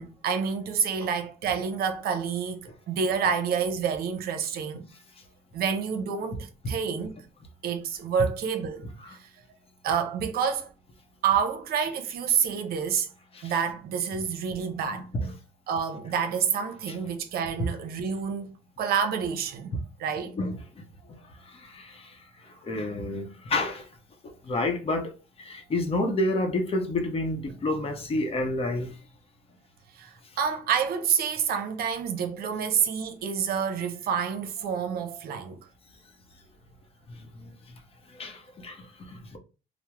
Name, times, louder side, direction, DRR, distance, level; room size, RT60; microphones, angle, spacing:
voice 1, 0.0-2.6 2.9-4.8 5.5-7.2 7.6-9.3 9.8-10.7 11.2-13.1 13.4-15.1 15.7-19.7 20.0-20.4 29.9-35.6, right 7 dB, 65° right, 0.6 m, -28 dB
voice 2, 8.8-9.2 13.3-13.5 14.9-15.3 16.9-17.0 17.6-17.8 19.7-19.8 20.3-23.9 24.2-25.1 25.4-29.0 37.1-37.8 38.1-39.4, left 1 dB, 35° left, 0.8 m, -30 dB
3.4 x 2.0 x 2.9 m
cardioid pair, 110°, 17 cm